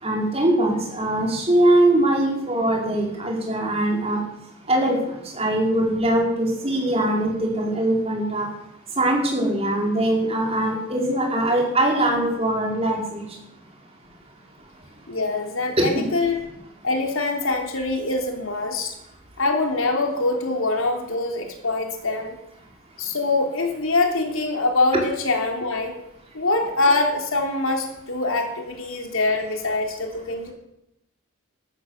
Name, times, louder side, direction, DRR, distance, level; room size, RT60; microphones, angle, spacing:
voice 1, 0.0-4.2 4.7-5.0 5.3-8.5 9.0-13.3 15.8-15.9, right 1 dB, 30° right, 0 dB, 4.5 m, -21 dB
voice 2, 15.1-16.4 16.8-18.9 19.4-22.3 23.0-25.9 26.3-30.5, left 2 dB, 75° left, 3 dB, 3.2 m, -24 dB
14.0 x 13.0 x 7.2 m, 0.83 s
head